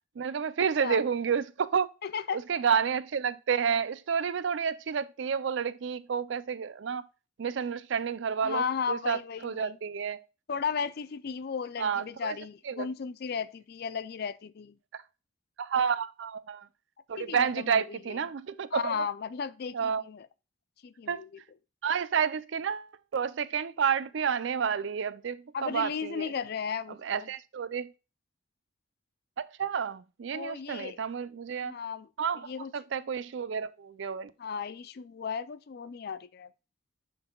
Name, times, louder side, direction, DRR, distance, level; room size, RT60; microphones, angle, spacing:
voice 1, 0.2-1.9 2.3-7.0 7.4-10.2 11.8-12.4 12.7-12.9 14.9-15.0 15.6-16.7 17.1-19.0 19.7-20.1 21.1-21.3 21.8-26.3 26.9-27.9 29.4-31.7 32.2-32.5 32.7-34.3, right 7 dB, 65° right, 0.4 m, -30 dB
voice 2, 2.0-2.4 8.4-9.8 10.5-14.8 17.2-18.2 18.7-20.3 20.8-21.3 25.5-27.3 30.3-31.0 31.6-32.1 32.5-32.7 34.4-36.5, left 6 dB, 50° left, 0.4 m, -35 dB
11.5 x 3.9 x 2.2 m
head